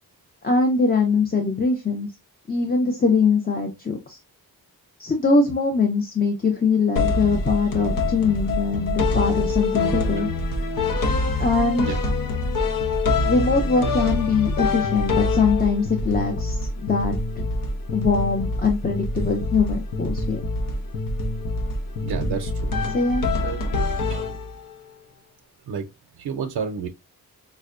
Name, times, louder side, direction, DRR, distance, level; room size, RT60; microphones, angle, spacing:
voice 1, 0.4-2.1 2.5-4.2 5.0-10.3 11.4-11.9 13.3-17.5 17.9-20.4 22.9-23.2, left 4 dB, 25° left, 0.6 m, -22 dB
sound 1, 7.0-24.8, left 2 dB, 60° left, 0.8 m, -25 dB
voice 2, 22.0-22.8 23.4-23.7 24.1-24.4 25.7-25.9 26.2-26.9, right 6 dB, 90° right, 0.6 m, -30 dB
5.4 x 2.2 x 2.4 m
wide cardioid pair, 125°, 37 cm